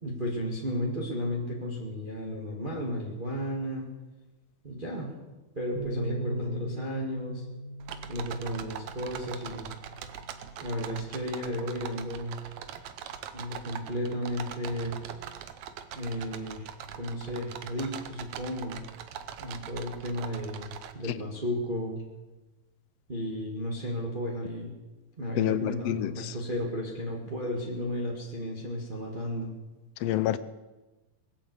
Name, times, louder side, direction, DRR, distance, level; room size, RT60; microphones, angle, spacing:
voice 1, 0.0-3.9 4.6-5.1 5.5-7.4 8.1-9.7 10.6-12.4 13.3-15.0 16.0-16.7 17.0-18.8 19.4-22.0 23.1-24.7 25.2-29.5, equal, 20° right, -2 dB, 1.8 m, -33 dB
sound 1, 5.8-12.0, right 1 dB, 50° right, 1.7 m, -40 dB
sound 2, 7.8-20.9, right 9 dB, 70° right, 2.1 m, -42 dB
voice 2, 25.4-26.3 30.0-30.4, left 13 dB, 80° left, 13 dB, 1.4 m, -28 dB
20.0 x 8.4 x 8.0 m, 1.1 s
omnidirectional pair, 3.5 m